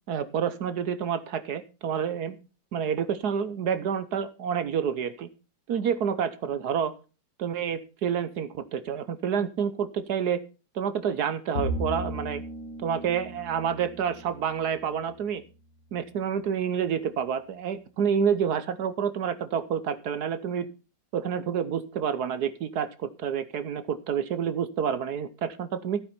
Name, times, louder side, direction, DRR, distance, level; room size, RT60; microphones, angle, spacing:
voice 1, 0.1-2.4 2.7-5.3 5.7-6.9 7.4-10.4 10.7-12.4 12.8-15.4 15.9-20.7 21.1-26.0, right 7 dB, 60° right, 13 dB, 1.2 m, -28 dB
Bowed string instrument, 11.5-15.0, equal, 60° left, 2.7 m, -35 dB
14.0 x 8.7 x 4.3 m, 0.33 s
omnidirectional pair, 2.1 m